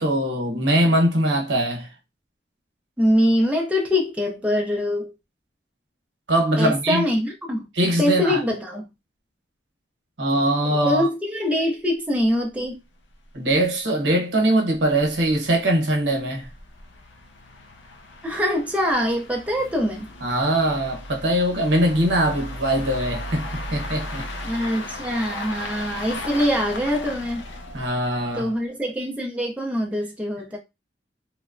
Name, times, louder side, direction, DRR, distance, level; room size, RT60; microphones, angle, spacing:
voice 1, 0.0-1.9 6.3-7.0 7.7-8.4 10.2-11.1 13.3-16.5 20.2-24.3 27.7-28.5, right 1 dB, 75° right, 1.0 m, -22 dB
voice 2, 3.0-5.1 6.6-7.7 8.0-8.9 10.8-12.7 18.2-20.1 24.4-27.4 28.3-30.6, left 1 dB, 10° right, 0.5 m, -23 dB
sound 1, 12.2-12.3 12.6-12.7 13.1-13.2 13.5-13.6 14.2-28.6, left 1 dB, 85° left, 0.5 m, -36 dB
3.2 x 2.0 x 2.4 m
head